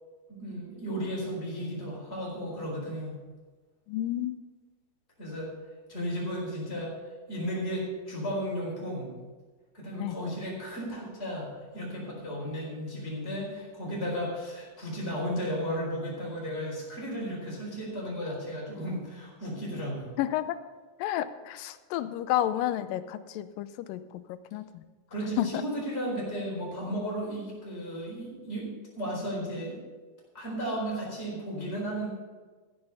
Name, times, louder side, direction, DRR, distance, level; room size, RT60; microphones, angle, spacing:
voice 1, 0.3-3.2 5.2-5.5 5.9-6.9 7.3-9.1 9.7-20.1 25.1-28.7 28.9-29.8 30.3-32.1, equal, 15° left, -4 dB, 4.4 m, -34 dB
voice 2, 3.9-4.4 10.0-10.2 20.2-20.6 21.0-24.8 25.2-25.6, left 12 dB, 85° left, 13 dB, 2.3 m, -31 dB
15.0 x 8.0 x 5.4 m, 1.3 s
omnidirectional pair, 3.9 m